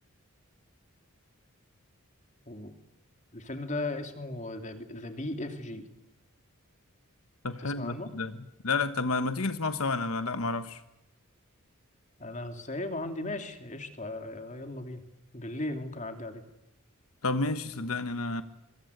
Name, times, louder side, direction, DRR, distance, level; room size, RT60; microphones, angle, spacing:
voice 1, 3.3-5.9 7.6-8.1 12.2-15.0 15.3-16.4, left 2 dB, 35° left, 6 dB, 2.8 m, -37 dB
voice 2, 7.4-8.3 8.6-10.8 17.2-18.4, left 3 dB, 85° left, 10 dB, 1.3 m, -30 dB
25.5 x 23.0 x 8.1 m, 0.90 s
head